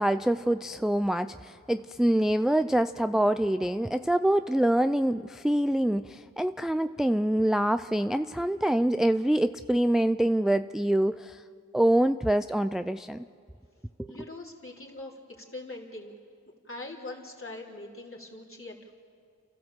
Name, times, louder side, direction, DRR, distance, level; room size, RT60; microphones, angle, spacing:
voice 1, 0.0-11.4 11.7-13.2 14.0-14.1, right 1 dB, ahead, 11 dB, 0.5 m, -25 dB
voice 2, 14.1-16.1 16.6-18.9, left 2 dB, 45° left, -2 dB, 3.8 m, -42 dB
29.0 x 14.0 x 7.6 m, 2.3 s
cardioid pair, 40°, 31 cm